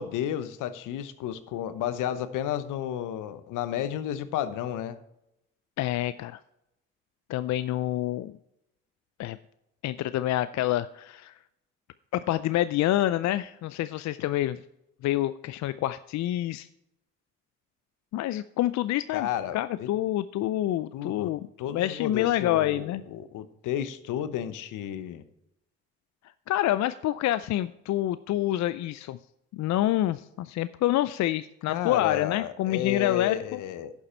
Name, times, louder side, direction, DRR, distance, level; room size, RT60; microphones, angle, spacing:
voice 1, 0.0-5.0 19.1-19.9 20.9-21.3 21.6-25.2 31.7-33.9, left 10 dB, 80° left, 13 dB, 0.9 m, -32 dB
voice 2, 5.8-6.4 7.3-8.4 9.2-9.4 9.8-11.3 12.1-14.6 15.0-16.7 18.1-23.0 26.5-29.2 29.5-33.6, left 14 dB, 60° left, 14 dB, 0.4 m, -27 dB
11.0 x 7.2 x 4.4 m, 0.84 s
supercardioid pair, 60°, 31 cm